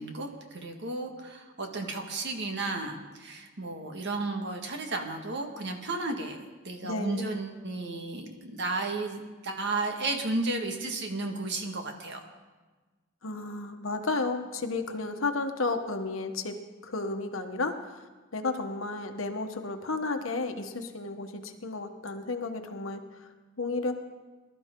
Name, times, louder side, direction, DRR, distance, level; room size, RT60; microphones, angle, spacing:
voice 1, 0.0-6.4 6.6-12.2, right 2 dB, 60° right, 3 dB, 1.7 m, -33 dB
voice 2, 6.8-7.3 13.2-16.6 16.8-18.0 18.3-23.0 23.6-23.9, left 3 dB, 70° left, 6 dB, 1.2 m, -32 dB
21.0 x 12.5 x 3.8 m, 1.3 s
head